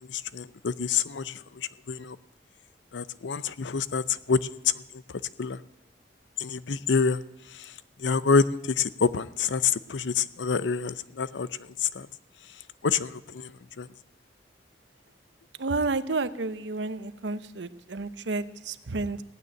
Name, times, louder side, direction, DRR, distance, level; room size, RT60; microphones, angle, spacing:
voice 1, 0.1-2.2 2.9-4.4 5.4-5.6 6.4-7.2 7.6-7.7 8.0-11.5 11.8-12.1 12.8-13.5 13.8-13.9, left 5 dB, 80° left, 16 dB, 0.6 m, -27 dB
voice 2, 15.6-19.2, right 3 dB, 75° right, 13 dB, 0.8 m, -31 dB
16.5 x 9.4 x 8.9 m, 0.92 s
head